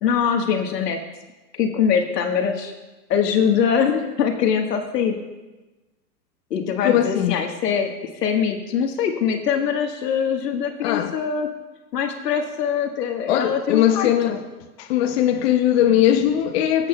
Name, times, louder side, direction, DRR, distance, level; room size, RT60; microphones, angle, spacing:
voice 1, 0.0-1.0 1.5-2.7 3.1-5.2 6.5-11.5 11.9-14.4, left 7 dB, 80° left, 1.6 m, -23 dB
voice 2, 6.8-7.4 10.8-11.2 13.3-14.4 14.8-16.9, left 11 dB, 40° left, 0.7 m, -20 dB
20.0 x 8.1 x 2.3 m
hypercardioid pair, 145°, 48 cm